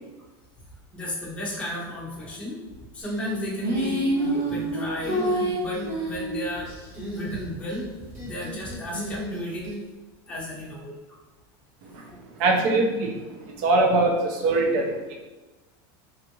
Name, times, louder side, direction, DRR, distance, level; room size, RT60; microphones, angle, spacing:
voice 1, 0.9-2.6 2.9-6.7 7.1-7.8 8.2-9.7 10.3-11.0 12.1-12.2, left 1 dB, 10° left, -6 dB, 0.8 m, -34 dB
sound 1, 3.0-3.9 4.2-4.7 5.0-5.9 6.9-7.9 8.1-9.8, right 1 dB, 15° right, 1.2 m, -35 dB
sound 2, 3.6-6.8, right 1 dB, 65° right, 1.1 m, -26 dB
voice 2, 12.4-13.2 13.6-15.1, right 2 dB, 50° right, 2 dB, 0.6 m, -22 dB
3.5 x 2.5 x 3.0 m, 1.1 s
supercardioid pair, 170°, 13 cm